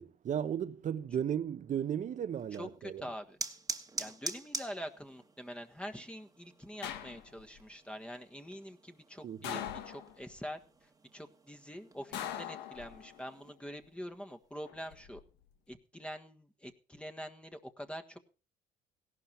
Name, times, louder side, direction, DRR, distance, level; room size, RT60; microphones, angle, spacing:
voice 1, 0.0-3.1 9.2-9.7, right 9 dB, 45° right, 1.0 m, -35 dB
sound 1, 2.4-13.5, right 3 dB, 20° right, 1.6 m, -46 dB
voice 2, 4.0-10.6 11.1-15.2 15.7-18.2, equal, 5° left, 1.5 m, -45 dB
sound 2, 6.8-7.6 9.4-10.4 12.1-13.3 14.7-15.2, left 10 dB, 85° left, 1.7 m, -41 dB
17.0 x 11.5 x 4.5 m
cardioid pair, 110°, 17 cm